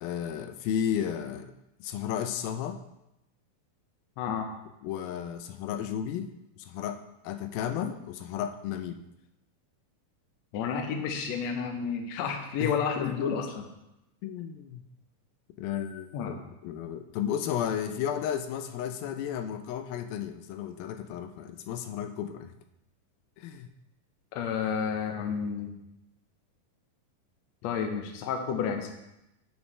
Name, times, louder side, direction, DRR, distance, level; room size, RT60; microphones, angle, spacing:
voice 1, 0.0-1.5 1.8-2.8 4.8-6.3 6.6-9.0 12.6-13.4 14.2-14.8 15.6-22.5 23.4-23.7, left 9 dB, 90° left, 7 dB, 2.5 m, -33 dB
voice 2, 4.2-4.5 10.5-13.6 16.1-16.4 24.3-25.7 27.6-28.9, left 6 dB, 70° left, 4 dB, 1.7 m, -31 dB
10.5 x 6.1 x 3.3 m, 0.88 s
omnidirectional pair, 4.1 m